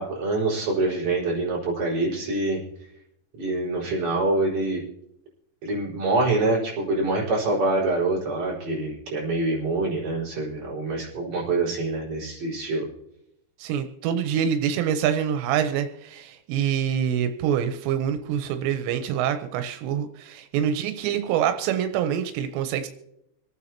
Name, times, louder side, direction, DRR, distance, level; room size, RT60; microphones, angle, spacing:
voice 1, 0.0-2.6 3.4-4.8 5.6-12.9, right 2 dB, 40° right, -6 dB, 5.5 m, -25 dB
voice 2, 13.6-22.9, right 9 dB, 90° right, 7 dB, 3.0 m, -25 dB
26.0 x 9.3 x 2.9 m, 0.81 s
omnidirectional pair, 5.1 m